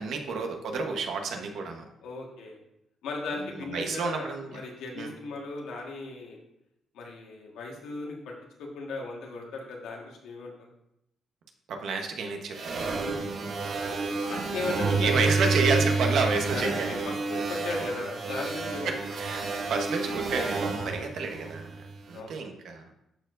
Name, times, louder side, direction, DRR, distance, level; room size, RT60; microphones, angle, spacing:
voice 1, 0.0-1.8 3.5-4.6 5.0-5.1 11.7-12.8 14.3-14.4 15.0-17.0 18.8-22.9, right 4 dB, 70° right, 4 dB, 1.1 m, -30 dB
voice 2, 2.0-2.6 3.0-6.4 6.9-8.3 8.6-10.7 13.0-13.1 14.2-15.1 16.5-18.9 22.1-22.5, left 3 dB, 85° left, -1 dB, 1.6 m, -37 dB
sound 1, 12.5-22.0, right 4 dB, 45° right, 1.0 m, -30 dB
12.5 x 4.6 x 2.6 m, 0.81 s
cardioid pair, 135°, 0 cm